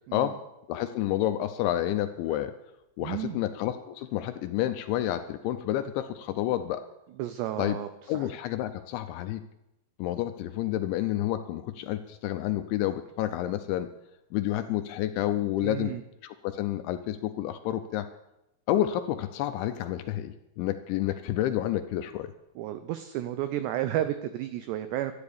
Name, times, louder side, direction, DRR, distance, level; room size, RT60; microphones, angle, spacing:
voice 1, 0.7-2.5 3.0-6.9 7.6-7.8 8.1-9.4 10.0-13.9 14.3-15.9 16.2-18.1 18.7-22.3, left 13 dB, 80° left, 9 dB, 2.8 m, -29 dB
voice 2, 3.0-3.4 7.2-8.3 15.6-16.0 22.6-25.1, right 12 dB, 90° right, 10 dB, 2.4 m, -32 dB
12.5 x 11.0 x 8.5 m, 0.91 s
omnidirectional pair, 5.8 m